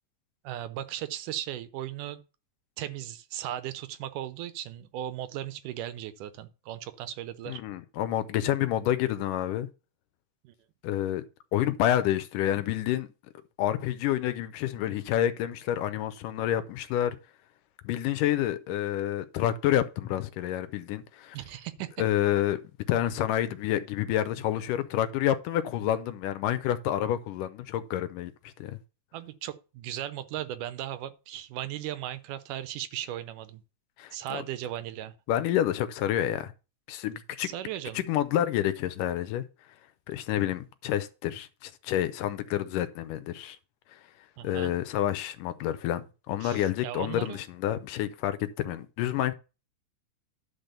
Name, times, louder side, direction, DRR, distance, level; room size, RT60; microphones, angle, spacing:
voice 1, 0.4-2.2 2.8-7.6 10.4-10.5 21.3-21.9 29.1-33.6 34.1-35.2 37.4-38.1 44.4-44.7 46.4-47.4, right 12 dB, 80° right, 2.3 m, -37 dB
voice 2, 7.5-9.7 10.8-11.2 11.5-13.1 13.6-17.2 17.8-21.4 22.0-22.6 22.9-28.3 28.6-28.8 34.0-34.4 35.3-36.5 36.9-37.5 38.0-39.4 40.1-43.6 44.4-49.3, left 12 dB, 85° left, 2.4 m, -28 dB
10.5 x 4.4 x 6.7 m
omnidirectional pair, 3.7 m